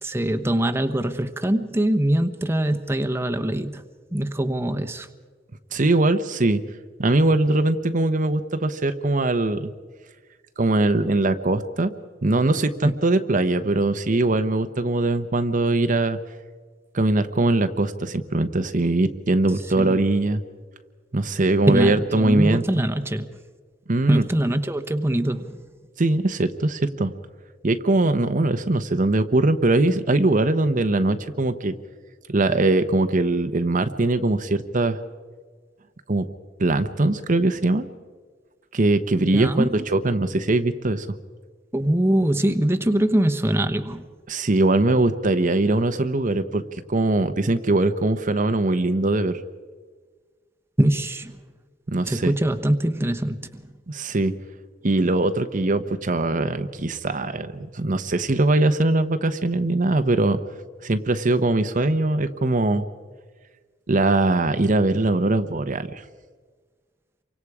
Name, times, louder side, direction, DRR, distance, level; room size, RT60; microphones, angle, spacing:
voice 1, 0.0-3.8 4.1-5.1 12.8-12.9 19.7-20.0 21.7-23.2 24.1-25.6 39.3-39.7 41.7-44.0 50.8-51.4 52.1-53.6, right 1 dB, 15° right, 8 dB, 1.0 m, -23 dB
voice 2, 5.7-6.6 7.0-9.7 10.6-11.9 12.2-16.2 16.9-20.4 21.1-22.8 23.9-24.2 26.0-27.1 27.6-31.7 32.3-35.0 36.1-36.3 36.6-37.9 38.7-41.1 44.3-46.6 46.9-49.4 51.9-52.3 53.9-54.3 54.8-60.4 60.8-62.8 63.9-66.0, right 2 dB, 45° right, 9 dB, 0.9 m, -21 dB
28.5 x 24.5 x 4.9 m, 1.5 s
head